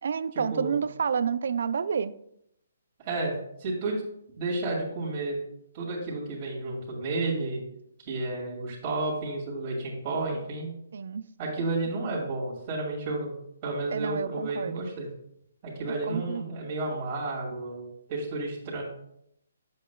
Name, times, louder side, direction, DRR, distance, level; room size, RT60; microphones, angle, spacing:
voice 1, 0.0-2.2 10.9-11.3 13.9-14.9 16.0-16.4, right 6 dB, 65° right, 0.4 m, -29 dB
voice 2, 3.0-4.0 4.4-5.4 5.7-7.6 8.0-10.7 11.4-13.3 13.6-15.1 15.6-18.8, right 2 dB, 35° right, 2.2 m, -31 dB
7.6 x 7.3 x 2.2 m
hypercardioid pair, 145°, 0 cm